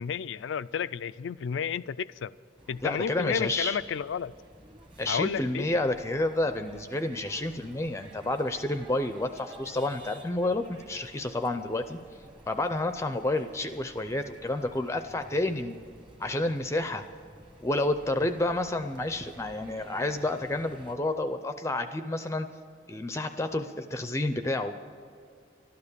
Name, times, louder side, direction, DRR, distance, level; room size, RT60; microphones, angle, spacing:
voice 1, 0.0-2.3 2.7-4.3 5.1-5.7, left 7 dB, 90° left, 17 dB, 0.4 m, -32 dB
sound 1, 2.6-21.0, right 1 dB, 25° right, 1.3 m, -52 dB
voice 2, 2.8-3.8 5.0-12.0 12.5-15.8 16.2-17.0 17.6-22.5 22.9-24.8, left 2 dB, 15° left, 9 dB, 0.4 m, -30 dB
12.5 x 12.0 x 6.8 m, 2.4 s
head